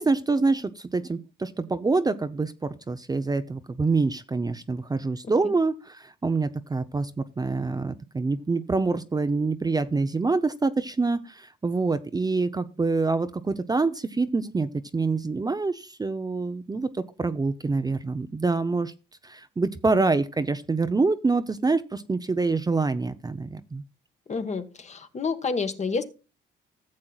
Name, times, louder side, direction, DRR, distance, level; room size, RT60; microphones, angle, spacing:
voice 1, 0.0-18.9 19.2-23.8, right 3 dB, 20° right, 10 dB, 0.6 m, -26 dB
voice 2, 24.3-26.0, left 4 dB, 35° left, 9 dB, 1.3 m, -29 dB
14.5 x 7.5 x 2.3 m, 0.30 s
cardioid pair, 90°, 20 cm